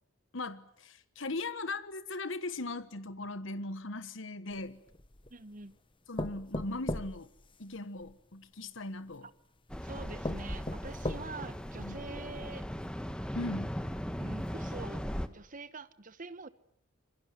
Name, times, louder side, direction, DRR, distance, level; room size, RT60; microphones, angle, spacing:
voice 1, 0.3-4.8 6.1-7.3 7.6-9.3 11.7-12.0 13.3-13.8, left 2 dB, 70° left, 13 dB, 1.4 m, -39 dB
sound 1, 4.5-5.4 6.2-8.1 9.1-9.2 9.8-9.9 10.2-11.6 12.1-12.2 12.5-12.6, left 1 dB, 25° left, 1.2 m, -38 dB
voice 2, 5.3-5.8 9.2-9.3 9.8-12.7 14.2-16.5, right 3 dB, 40° right, 14 dB, 1.2 m, -45 dB
sound 2, 9.7-15.3, equal, 5° left, 1.5 m, -38 dB
27.0 x 24.0 x 9.4 m, 0.65 s
head